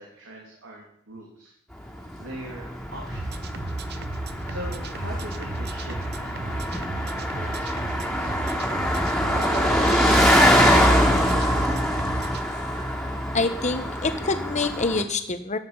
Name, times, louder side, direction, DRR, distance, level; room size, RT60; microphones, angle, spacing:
voice 1, 0.0-1.5 2.2-3.4 4.4-8.9 9.3-11.7, right 1 dB, 70° right, -2 dB, 2.9 m, -41 dB
Car passing by, 1.8-15.0, equal, ahead, 2.7 m, -24 dB
sound 1, 3.1-12.4, right 2 dB, 55° right, 0.9 m, -34 dB
voice 2, 13.3-15.6, left 3 dB, 35° left, 8 dB, 1.3 m, -26 dB
14.5 x 10.0 x 5.7 m, 0.69 s
head